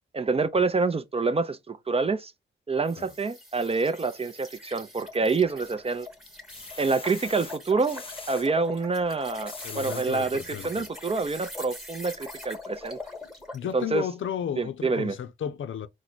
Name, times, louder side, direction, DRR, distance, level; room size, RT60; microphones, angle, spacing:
voice 1, 0.1-2.3 2.7-6.1 6.8-13.0 13.7-14.0 14.6-15.2, right 4 dB, 30° right, 0.5 m, -27 dB
sound 1, 2.9-13.7, left 2 dB, ahead, 1.2 m, -43 dB
sound 2, 5.2-5.8 6.3-8.4 9.2-10.1 10.7-10.8 11.1-11.2, left 3 dB, 25° left, 0.8 m, -42 dB
voice 2, 9.6-10.9 13.5-15.9, left 9 dB, 70° left, 0.5 m, -33 dB
4.5 x 2.1 x 3.8 m
cardioid pair, 80°, 21 cm